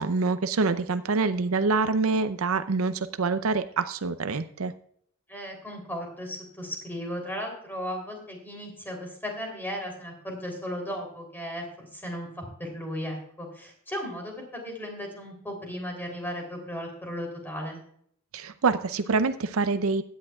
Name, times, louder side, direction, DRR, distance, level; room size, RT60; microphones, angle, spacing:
voice 1, 0.0-4.7 18.3-20.0, right 4 dB, 70° right, 11 dB, 0.6 m, -26 dB
voice 2, 5.3-17.8, equal, 10° left, 2 dB, 3.3 m, -36 dB
16.0 x 10.5 x 2.4 m, 0.63 s
head